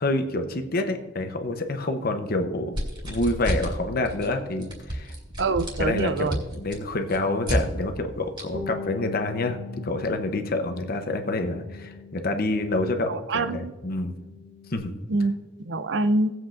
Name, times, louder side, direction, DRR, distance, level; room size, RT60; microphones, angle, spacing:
voice 1, 0.0-2.8 3.0-5.1 5.8-14.1 14.7-14.9, left 2 dB, 50° left, 6 dB, 0.9 m, -27 dB
sound 1, 2.7-3.8 4.0-4.3 4.6-7.6 8.4-8.5, right 1 dB, 25° right, 2.4 m, -30 dB
voice 2, 5.4-6.4 13.1-13.7 15.1-15.4 15.7-16.3, right 2 dB, 65° right, 11 dB, 0.5 m, -25 dB
Bass guitar, 8.5-13.3 13.6-14.8, left 4 dB, 10° right, 0.7 m, -41 dB
18.0 x 7.7 x 2.6 m, 1.2 s
head